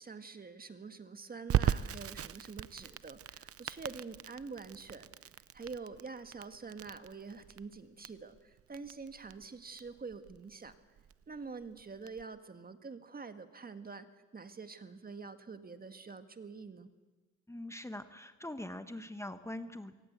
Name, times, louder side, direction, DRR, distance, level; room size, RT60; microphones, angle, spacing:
voice 1, 0.0-5.1 5.5-10.7 11.3-14.1 14.3-16.9, right 4 dB, 30° right, 9 dB, 1.7 m, -46 dB
Crackle, 1.5-12.2, right 10 dB, 50° right, 0.8 m, -38 dB
voice 2, 17.5-19.9, left 1 dB, 10° left, 9 dB, 1.3 m, -43 dB
23.5 x 19.0 x 8.2 m, 1.2 s
cardioid pair, 90°, 30 cm